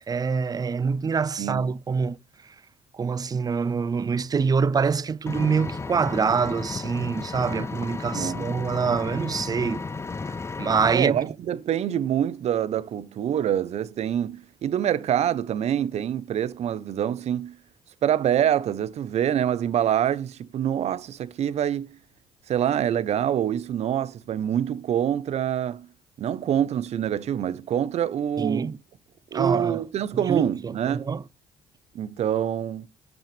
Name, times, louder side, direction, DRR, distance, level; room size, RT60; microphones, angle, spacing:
voice 1, 0.1-2.2 2.9-9.8 10.2-11.2 28.4-28.8 29.3-29.8 30.3-31.2, right 5 dB, 30° right, 0.5 m, -25 dB
voice 2, 1.4-1.7 8.1-8.5 10.9-17.6 18.0-22.0 22.5-25.9 26.2-28.7 29.3-31.0 31.9-32.9, right 10 dB, 60° right, 1.0 m, -26 dB
Vehicle, 5.3-10.9, left 4 dB, 20° left, 0.5 m, -33 dB
9.1 x 8.9 x 3.5 m
supercardioid pair, 75°, 12 cm